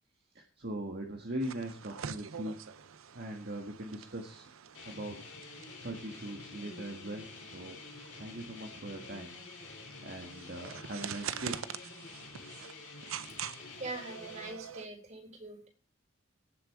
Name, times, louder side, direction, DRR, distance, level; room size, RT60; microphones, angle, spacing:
voice 1, 0.3-2.8 3.1-4.5 4.8-5.2 5.5-7.8 8.1-9.3 10.0-11.6, right 1 dB, 50° right, 2 dB, 1.7 m, -41 dB
sound 1, 1.4-14.9, right 8 dB, 90° right, 0.6 m, -46 dB
sound 2, 4.7-14.5, left 4 dB, 60° left, 2.9 m, -49 dB
voice 2, 13.8-15.7, right 2 dB, 35° right, 3 dB, 4.3 m, -43 dB
17.5 x 7.0 x 4.8 m, 0.39 s
head